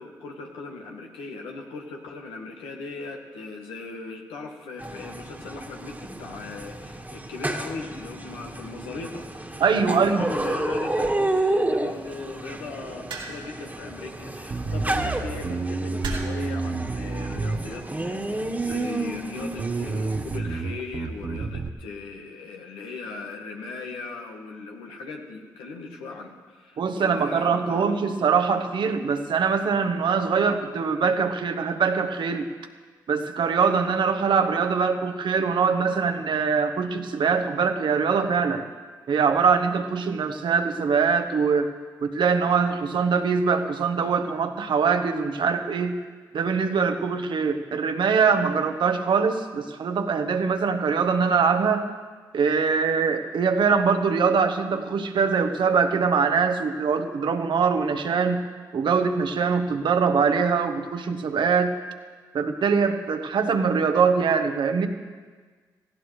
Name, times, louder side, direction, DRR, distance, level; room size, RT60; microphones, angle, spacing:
voice 1, 0.0-27.9, left 4 dB, 85° left, 1 dB, 1.4 m, -38 dB
sound 1, 4.8-20.4, right 2 dB, 20° right, 1.7 m, -31 dB
voice 2, 9.6-10.2 26.8-32.5 33.1-38.6 39.1-41.7 42.0-46.0 46.3-51.9 52.3-58.4 58.7-61.8 62.3-64.9, right 5 dB, 65° right, 7 dB, 1.1 m, -23 dB
sound 2, 13.1-13.6 14.8-15.1 16.0-16.5 17.5-17.8, right 3 dB, 80° right, 2.9 m, -34 dB
Bass guitar, 14.5-18.1 18.7-19.2 19.6-21.7, right 3 dB, 50° right, 0.9 m, -30 dB
18.0 x 16.0 x 3.3 m, 1.5 s
hypercardioid pair, 40°, 9 cm